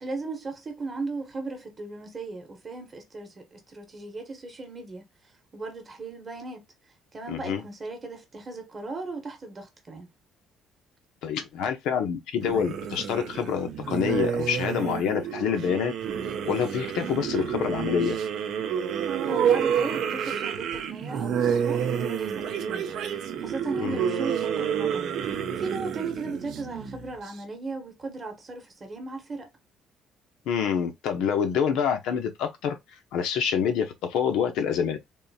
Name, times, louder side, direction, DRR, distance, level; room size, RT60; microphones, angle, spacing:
voice 1, 0.0-6.6 7.1-10.1 19.2-23.0 23.4-25.1 25.5-29.5, right 3 dB, 20° right, 0.9 m, -37 dB
voice 2, 7.3-7.6 11.2-15.9 16.5-18.2 23.8-24.0 30.5-32.8 33.1-35.0, left 7 dB, 80° left, 0.8 m, -27 dB
sound 1, 12.4-27.3, right 8 dB, 60° right, 0.5 m, -29 dB
3.6 x 2.6 x 2.7 m
cardioid pair, 165°, 0 cm